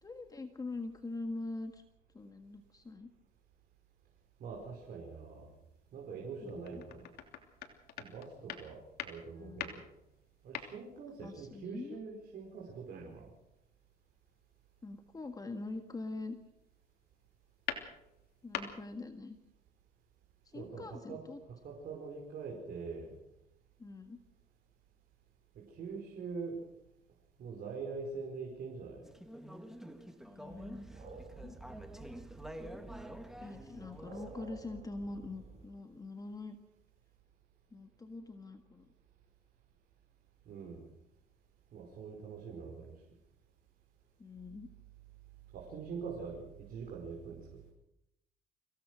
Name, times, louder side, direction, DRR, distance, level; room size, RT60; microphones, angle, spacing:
voice 1, 0.0-1.8 2.1-3.1 6.4-6.8 9.4-9.8 11.2-12.0 14.8-16.4 18.4-19.4 20.4-21.4 23.8-24.2 30.3-30.9 31.4-31.6 33.4-36.6 37.7-38.9 44.2-44.7, left 3 dB, 20° left, 7 dB, 1.7 m, -44 dB
voice 2, 4.4-5.5 5.9-7.1 8.0-9.8 10.4-13.3 20.5-21.2 21.6-23.1 25.6-26.6 27.4-29.1 40.5-40.9 41.7-42.9 45.5-47.4, right 5 dB, 60° right, -2 dB, 5.2 m, -44 dB
sound 1, 4.5-5.0 5.5-5.6 6.2-11.2 11.7-12.2 14.1-14.3 15.4-15.7 16.1-16.7 17.1-18.9, left 9 dB, 70° left, 3.0 m, -44 dB
Conversation / Chatter, 29.0-34.4, equal, 5° right, 1.9 m, -49 dB
sound 2, 30.5-35.7, right 4 dB, 40° right, 4.5 m, -51 dB
25.5 x 17.0 x 6.3 m, 0.85 s
cardioid pair, 110°, 17 cm